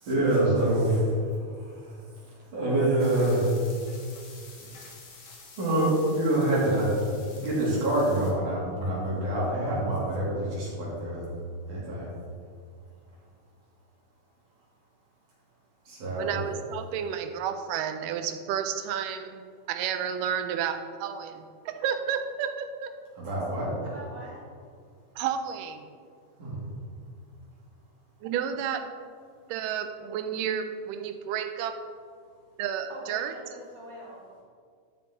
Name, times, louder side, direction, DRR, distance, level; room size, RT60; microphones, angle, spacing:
voice 1, 0.0-1.1 1.5-1.9 2.5-3.5 5.6-6.9 7.4-11.3 11.7-12.1 15.9-16.4 23.2-23.7 26.4-26.6, right 1 dB, 70° right, -7 dB, 4.5 m, -26 dB
sound 1, 3.0-8.3, left 4 dB, 50° left, 1.8 m, -49 dB
voice 2, 16.2-19.4 19.7-23.0 25.2-25.9 28.2-28.9 29.5-31.8 32.6-33.3, right 8 dB, 90° right, 8 dB, 2.3 m, -31 dB
voice 3, 23.8-24.5 32.9-34.4, equal, 25° right, -7 dB, 3.0 m, -44 dB
12.5 x 7.2 x 3.9 m, 2.1 s
omnidirectional pair, 3.7 m